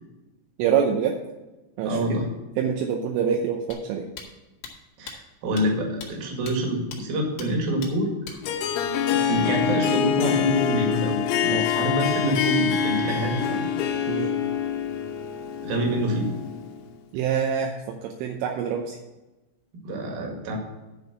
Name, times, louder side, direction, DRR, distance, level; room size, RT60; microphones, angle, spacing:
voice 1, 0.6-1.2 1.8-2.2 2.6-4.1 11.5-11.6 14.1-14.3 17.1-19.0, right 7 dB, 80° right, 2 dB, 3.2 m, -25 dB
voice 2, 1.8-2.3 5.0-8.4 9.1-13.7 15.6-16.4 19.7-20.6, right 1 dB, 55° right, 1 dB, 3.2 m, -27 dB
sound 1, 3.7-3.8 4.2-4.3 4.6-4.7 5.1-5.2 5.6-5.7 6.0-6.1 6.5-6.6 6.9-7.0 7.4-7.5 7.8-7.9 8.3-8.4, left 6 dB, 60° left, 2.5 m, -38 dB
Harp, 8.4-16.9, left 8 dB, 80° left, 3.1 m, -25 dB
11.0 x 4.9 x 6.8 m, 1.1 s
omnidirectional pair, 5.9 m